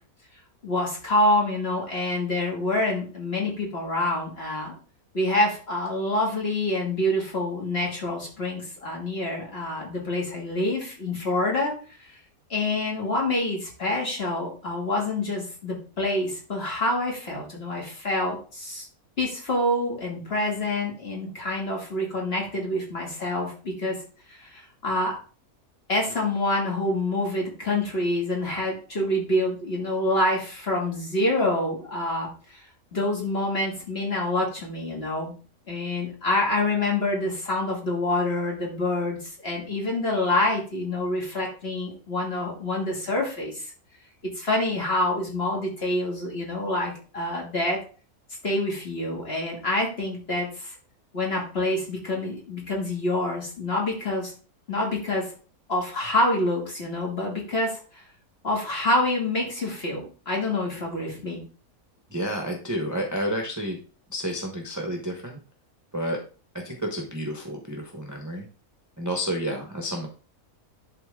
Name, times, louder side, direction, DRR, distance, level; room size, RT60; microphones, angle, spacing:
voice 1, 0.6-4.8 5.1-11.8 12.5-18.9 19.2-24.0 24.3-25.2 25.9-32.6 32.9-35.3 35.7-43.7 44.3-47.8 48.4-50.7 51.1-54.3 54.7-55.3 55.7-58.0 58.4-61.4, left 1 dB, 40° left, -2 dB, 2.6 m, -27 dB
voice 2, 62.1-63.8 64.1-65.4 65.9-66.2 66.5-68.5 69.0-70.1, equal, 15° right, 0 dB, 0.9 m, -30 dB
11.0 x 4.0 x 3.6 m, 0.38 s
omnidirectional pair, 1.6 m